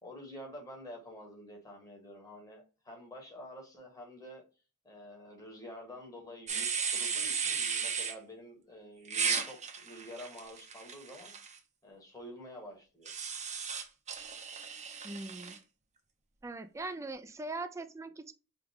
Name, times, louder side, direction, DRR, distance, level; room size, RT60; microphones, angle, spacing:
voice 1, 0.0-4.4 4.8-11.3 11.8-13.1, equal, 15° left, 1.6 m, -48 dB
sound 1, 6.5-8.1 9.1-11.5 13.0-15.6, right 6 dB, 30° right, 0.8 m, -35 dB
voice 2, 15.0-15.6 16.4-18.3, right 2 dB, 15° right, 0.4 m, -41 dB
5.0 x 2.4 x 3.5 m
head